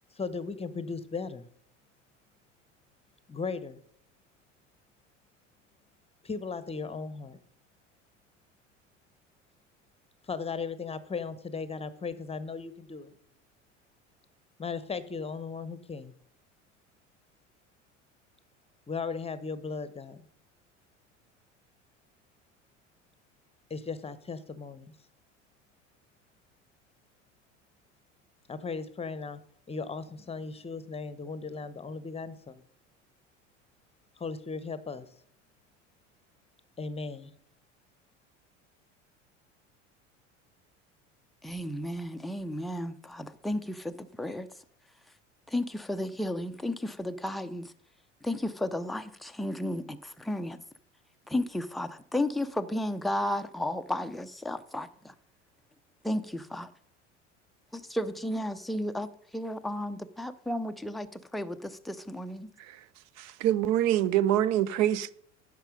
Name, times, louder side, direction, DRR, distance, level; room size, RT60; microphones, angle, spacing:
voice 1, 0.2-1.4 3.3-3.8 6.2-7.4 10.3-13.1 14.6-16.1 18.9-20.2 23.7-24.9 28.5-29.4 29.7-32.6 34.2-35.1 36.8-37.3, left 4 dB, 15° left, 0.9 m, -37 dB
voice 2, 41.4-44.5 45.5-47.7 48.2-50.6 51.3-55.1 56.0-56.7 57.7-62.5, left 1 dB, ahead, 0.4 m, -33 dB
voice 3, 63.2-65.1, right 12 dB, 45° right, 0.6 m, -25 dB
10.0 x 6.7 x 5.3 m
hypercardioid pair, 75°, 37 cm